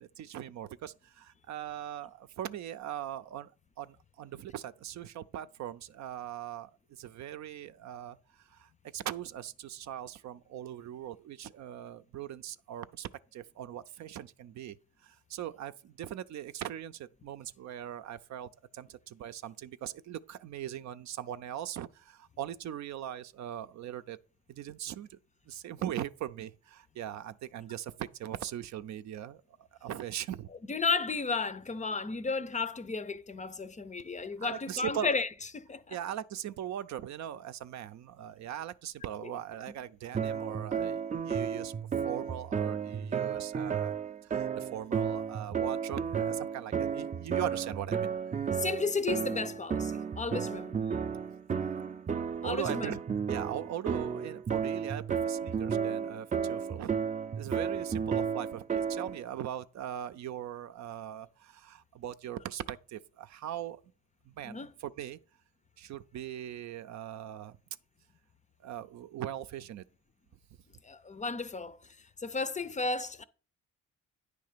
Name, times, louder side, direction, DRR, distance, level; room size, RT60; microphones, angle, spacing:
voice 1, 0.0-3.5 3.8-8.2 8.5-14.8 15.0-24.2 24.5-25.2 25.5-30.5 34.4-35.1 35.9-41.8 42.0-43.9 44.2-48.1 52.4-57.0 57.4-63.8 64.3-65.2 65.8-67.6 68.6-69.8, right 11 dB, 65° right, 0.6 m, -40 dB
voice 2, 30.7-36.0 39.2-39.3 48.5-50.8 52.4-53.0 64.4-64.7 70.8-71.8 72.2-73.2, left 4 dB, 25° left, 0.5 m, -33 dB
sound 1, 40.1-59.2, right 7 dB, 25° right, 0.5 m, -33 dB
9.4 x 3.4 x 6.7 m
cardioid pair, 90°, 30 cm